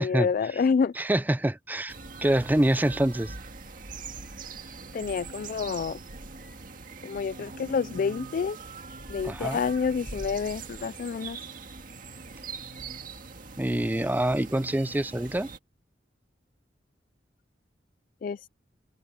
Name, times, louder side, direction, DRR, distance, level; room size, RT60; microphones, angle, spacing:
voice 1, 0.0-0.9 4.9-6.0 7.0-8.6 9.1-11.4 18.2-18.5, left 5 dB, 50° left, 0.3 m, -28 dB
voice 2, 1.0-1.9 2.2-3.3 9.2-9.6 13.6-15.5, right 1 dB, 10° right, 0.5 m, -25 dB
sound 1, 1.9-15.6, right 4 dB, 50° right, 1.9 m, -42 dB
open air
head